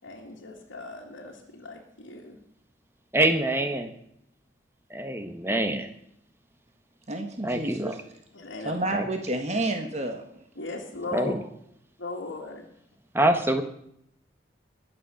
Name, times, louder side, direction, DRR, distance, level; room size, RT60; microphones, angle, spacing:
voice 1, 0.0-2.4 8.3-8.8 10.6-11.4 12.0-12.7, left 2 dB, 75° left, -3 dB, 2.1 m, -38 dB
voice 2, 3.1-3.9 4.9-5.9 7.4-7.9 8.9-9.0 11.1-11.4 13.1-13.6, right 1 dB, 10° right, 7 dB, 1.2 m, -25 dB
voice 3, 7.1-8.0 8.6-10.2, right 2 dB, 35° right, 4 dB, 1.6 m, -29 dB
20.5 x 7.8 x 6.9 m, 0.74 s
head